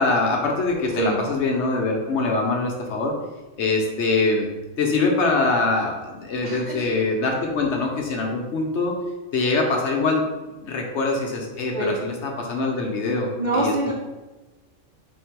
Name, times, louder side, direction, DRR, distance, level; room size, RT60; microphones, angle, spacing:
voice 1, 0.0-3.1 3.6-4.5 4.8-8.9 9.3-10.2 10.6-13.3 13.5-13.7, left 3 dB, 65° left, 1 dB, 1.0 m, -23 dB
voice 2, 6.4-6.8 11.7-12.0 13.4-13.9, right 2 dB, 50° right, -3 dB, 0.6 m, -25 dB
4.3 x 2.7 x 4.5 m, 1.1 s
omnidirectional pair, 1.3 m